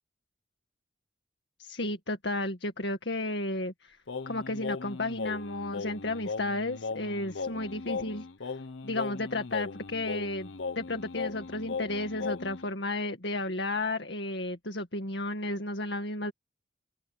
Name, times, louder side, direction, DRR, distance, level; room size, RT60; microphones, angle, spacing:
voice 1, 1.6-4.0 4.3-8.3 8.8-16.3, left 2 dB, 65° left, 2.1 m, -33 dB
Singing, 4.1-12.7, left 4 dB, 90° left, 0.9 m, -37 dB
open air
head